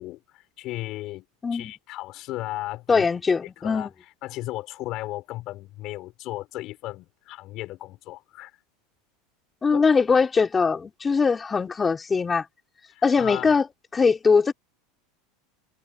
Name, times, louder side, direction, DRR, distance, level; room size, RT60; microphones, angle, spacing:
voice 1, 0.0-1.3 1.5-3.1 3.6-3.9 4.2-8.5 9.7-9.8 12.9-13.6, left 17 dB, 50° left, 5.7 m, -35 dB
voice 2, 2.9-3.9 9.6-12.5 13.0-13.7 13.9-14.5, left 5 dB, 20° left, 4.4 m, -21 dB
supercardioid pair, 130°, 0 cm